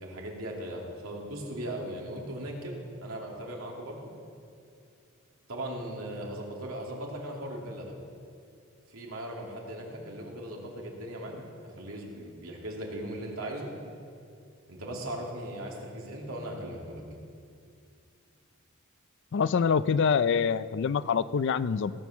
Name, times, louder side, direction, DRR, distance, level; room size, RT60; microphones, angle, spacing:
voice 1, 0.0-4.1 5.5-7.9 8.9-13.7 14.7-17.0, right 1 dB, 90° right, -1 dB, 2.7 m, -38 dB
voice 2, 19.3-21.9, left 6 dB, 60° left, 16 dB, 0.4 m, -25 dB
17.0 x 8.0 x 7.1 m, 2.4 s
head